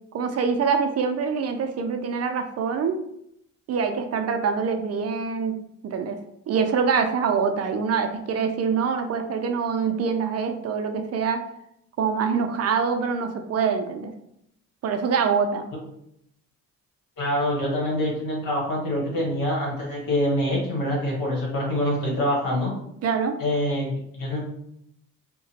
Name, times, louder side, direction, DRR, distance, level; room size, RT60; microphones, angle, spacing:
voice 1, 0.1-3.0 3.7-5.6 5.8-6.2 6.5-11.4 12.0-14.1 14.8-15.7 23.0-23.3, right 6 dB, 45° right, 6 dB, 0.4 m, -25 dB
voice 2, 17.2-22.7 23.4-24.4, left 1 dB, 70° left, -2 dB, 1.3 m, -25 dB
2.8 x 2.2 x 2.7 m, 0.75 s
cardioid pair, 85°, 35 cm